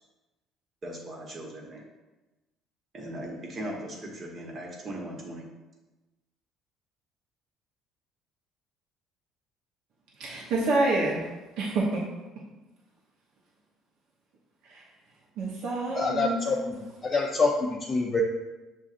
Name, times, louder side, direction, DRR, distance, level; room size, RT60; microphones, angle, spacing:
voice 1, 0.8-1.8 2.9-5.5, right 1 dB, 35° right, -1 dB, 1.2 m, -38 dB
voice 2, 10.2-11.2 11.6-12.1 14.7-14.8 15.4-16.4, right 2 dB, 70° right, -3 dB, 0.8 m, -27 dB
voice 3, 15.9-16.6 17.0-18.2, left 3 dB, 30° left, -3 dB, 0.6 m, -26 dB
7.1 x 2.5 x 2.5 m, 1.1 s
cardioid pair, 105°, 0 cm